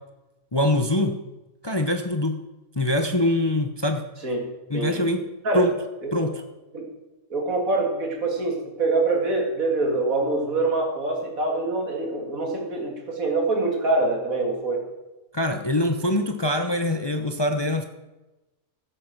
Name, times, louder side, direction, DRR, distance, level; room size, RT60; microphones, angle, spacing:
voice 1, 0.5-1.2 1.6-2.4 2.8-4.0 4.7-5.3 5.5-5.7 6.1-6.4 15.3-17.8, left 1 dB, 25° left, 6 dB, 0.7 m, -23 dB
voice 2, 7.3-14.8, right 2 dB, 70° right, 1 dB, 2.8 m, -25 dB
14.5 x 8.5 x 6.0 m, 1.0 s
omnidirectional pair, 1.5 m